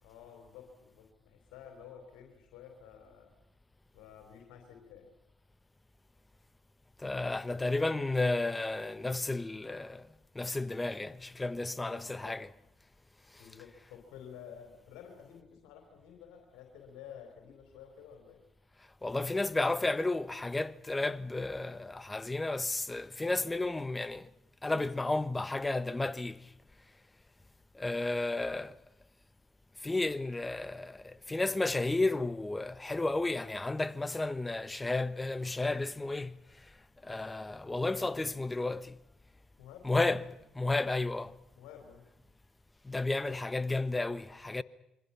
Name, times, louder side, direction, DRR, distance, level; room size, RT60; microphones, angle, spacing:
voice 1, 0.0-3.3 3.9-5.1 11.7-12.3 13.4-18.4 39.6-39.9 41.5-42.1 43.3-43.4, left 8 dB, 80° left, 4.0 m, -52 dB
voice 2, 7.0-12.5 19.0-24.3 24.6-26.5 27.7-28.8 29.8-36.8 37.0-39.0 39.8-41.4 42.8-44.6, left 2 dB, 20° left, 1.2 m, -32 dB
27.5 x 24.0 x 5.8 m
hypercardioid pair, 55°, 0 cm